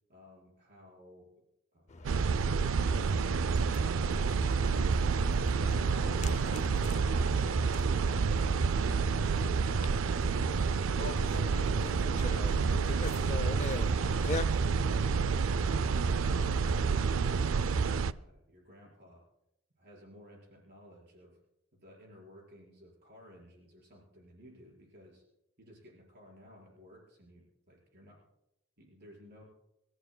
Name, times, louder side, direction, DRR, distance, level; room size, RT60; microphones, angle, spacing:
voice 1, 0.1-1.3 1.7-3.6 11.0-12.1 14.9-19.2 19.8-21.4 21.7-25.2 25.6-28.2 28.8-29.4, equal, 55° right, -2 dB, 4.8 m, -56 dB
sound 1, 1.9-14.4, left 3 dB, 35° left, 0.6 m, -43 dB
sound 2, 2.0-18.1, right 5 dB, 80° right, 0.4 m, -29 dB
28.5 x 14.5 x 2.2 m, 0.86 s
head